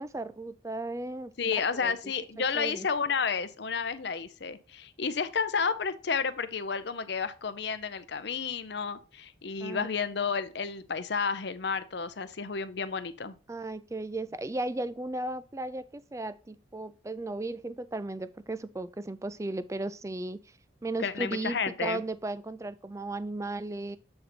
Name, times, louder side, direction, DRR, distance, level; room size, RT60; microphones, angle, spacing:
voice 1, 0.0-1.9 2.5-2.9 9.6-9.9 13.5-20.4 20.8-24.0, right 2 dB, 15° right, 0.3 m, -35 dB
voice 2, 1.4-13.4 21.0-22.0, left 5 dB, 60° left, 0.6 m, -31 dB
7.7 x 4.0 x 4.3 m
head